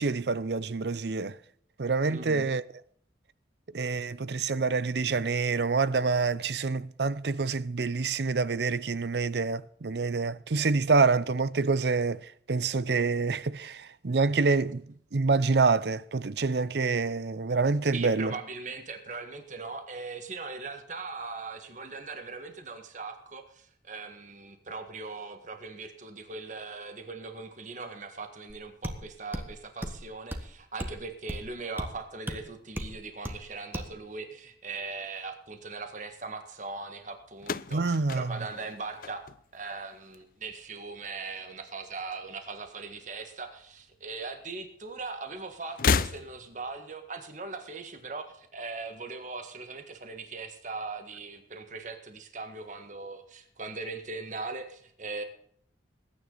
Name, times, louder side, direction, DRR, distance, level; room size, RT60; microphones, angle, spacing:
voice 1, 0.0-1.4 1.8-2.6 3.7-18.4 37.7-38.4, right 4 dB, 70° right, 0.6 m, -27 dB
voice 2, 2.1-2.5 17.9-55.2, right 3 dB, 45° right, 1.7 m, -40 dB
sound 1, 28.5-28.6 28.8-29.0 29.3-29.5 29.8-30.0 30.3-30.5 30.8-31.0 31.3-31.5 31.8-31.9 32.3-32.4 32.8-32.9 33.2-33.4 33.7-33.9, equal, 10° right, 1.5 m, -35 dB
sound 2, 37.4-39.7 40.0-40.6 41.7-42.7 42.9-43.1 44.2-44.3 45.7-46.7, left 5 dB, 50° left, 0.5 m, -31 dB
21.0 x 9.9 x 4.0 m
head